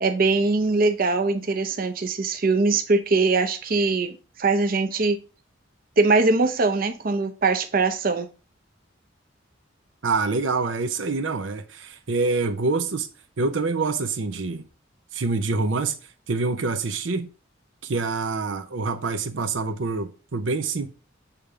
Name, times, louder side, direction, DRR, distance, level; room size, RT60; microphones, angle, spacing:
voice 1, 0.0-4.1 4.4-5.2 6.0-8.3, right 3 dB, 50° right, 0.7 m, -22 dB
voice 2, 10.0-13.1 13.4-14.6 15.1-16.0 16.3-17.3 17.8-20.9, right 3 dB, 85° right, 0.7 m, -26 dB
7.2 x 3.5 x 4.9 m
head